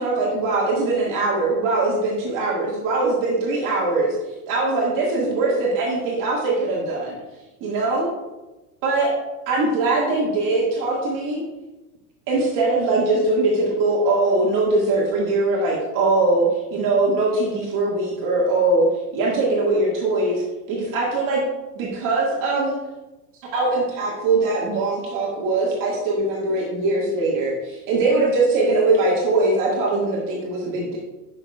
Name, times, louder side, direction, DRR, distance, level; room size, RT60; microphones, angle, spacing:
voice 1, 0.0-4.1 4.5-7.2 7.6-8.1 8.8-9.1 9.5-11.4 12.3-18.8 19.2-20.4 20.7-21.4 21.8-22.8 23.5-31.0, right 2 dB, 45° right, -4 dB, 2.0 m, -21 dB
8.7 x 6.2 x 2.4 m, 1.1 s
supercardioid pair, 115°, 45 cm